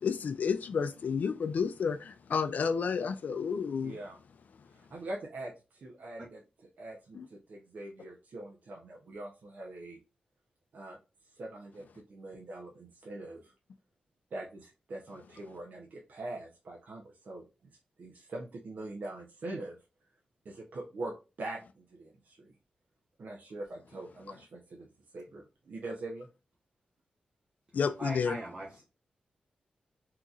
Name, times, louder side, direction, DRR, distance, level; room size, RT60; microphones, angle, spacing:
voice 1, 0.0-4.0 7.1-7.3 27.7-28.4, left 6 dB, 65° left, 0.3 m, -31 dB
voice 2, 3.8-4.2 4.7-6.4 6.8-10.0 10.7-11.0 11.2-13.5 14.3-17.7 18.0-19.8 20.4-22.6 23.2-24.9 25.1-26.3, right 2 dB, 70° right, 0.7 m, -43 dB
voice 3, 27.8-28.8, right 1 dB, 35° right, 1.0 m, -41 dB
3.8 x 2.9 x 2.4 m
cardioid pair, 70°, 3 cm